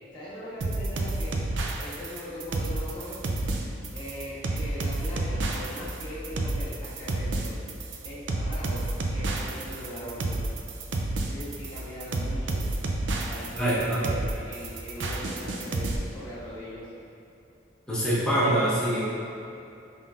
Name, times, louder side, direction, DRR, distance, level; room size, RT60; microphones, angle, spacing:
voice 1, 0.1-1.4 1.8-3.2 3.9-7.5 8.0-10.4 11.3-12.7 13.2-16.9, equal, 25° left, -10 dB, 1.2 m, -40 dB
sound 1, 0.6-16.0, right 2 dB, 70° right, 0.4 m, -30 dB
sound 2, 2.4-16.0, equal, 45° right, 1.3 m, -45 dB
voice 2, 13.6-14.1 17.9-19.0, right 1 dB, 5° left, -11 dB, 1.1 m, -24 dB
5.4 x 3.7 x 2.4 m, 2.7 s
head